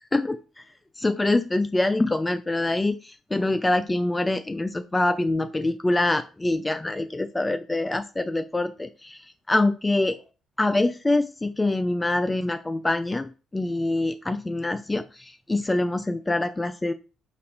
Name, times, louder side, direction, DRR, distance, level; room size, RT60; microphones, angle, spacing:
voice 1, 0.1-0.7 1.0-10.2 10.6-16.9, left 2 dB, 20° left, 9 dB, 0.3 m, -25 dB
4.1 x 2.4 x 4.1 m, 0.34 s
supercardioid pair, 60°, 0 cm